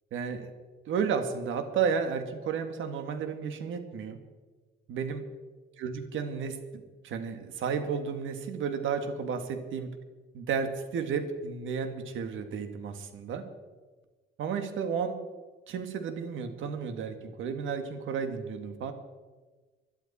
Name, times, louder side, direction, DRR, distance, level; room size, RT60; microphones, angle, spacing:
voice 1, 0.1-0.5 0.9-4.2 4.9-5.3 5.8-9.9 10.3-13.4 14.4-15.2 15.7-18.9, right 6 dB, 80° right, 8 dB, 2.0 m, -32 dB
21.0 x 12.0 x 4.3 m, 1.3 s
cardioid pair, 90°, 20 cm